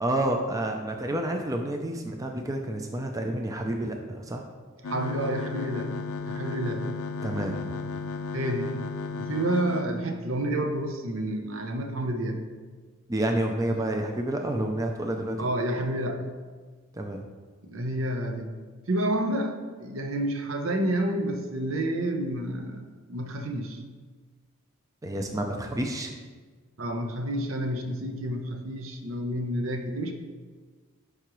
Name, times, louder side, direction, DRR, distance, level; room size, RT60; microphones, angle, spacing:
voice 1, 0.0-4.4 7.2-7.8 13.1-15.4 16.9-17.2 25.0-26.2, right 1 dB, 15° right, 3 dB, 0.5 m, -29 dB
sound 1, 4.8-9.8, left 4 dB, 80° left, 0.6 m, -34 dB
voice 2, 4.9-6.0 6.3-6.8 8.3-8.7 9.2-12.4 15.4-16.3 17.6-18.5 18.9-22.8 23.1-23.8 26.8-30.1, right 1 dB, 65° right, 5 dB, 0.8 m, -29 dB
11.5 x 4.9 x 3.1 m, 1.4 s
head